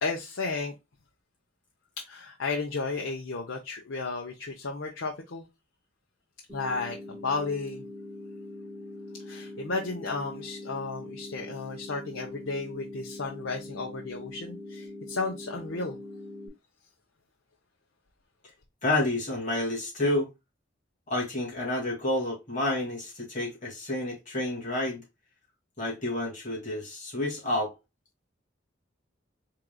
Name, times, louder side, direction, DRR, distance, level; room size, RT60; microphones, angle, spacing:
voice 1, 0.0-0.7 2.0-5.4 6.5-7.8 9.2-16.0, left 3 dB, 80° left, 0.8 m, -33 dB
sound 1, 6.5-16.5, left 1 dB, 10° right, 2.4 m, -42 dB
voice 2, 18.8-20.3 21.1-25.0 25.8-27.7, left 1 dB, 40° left, 2.3 m, -29 dB
4.6 x 3.8 x 2.2 m
head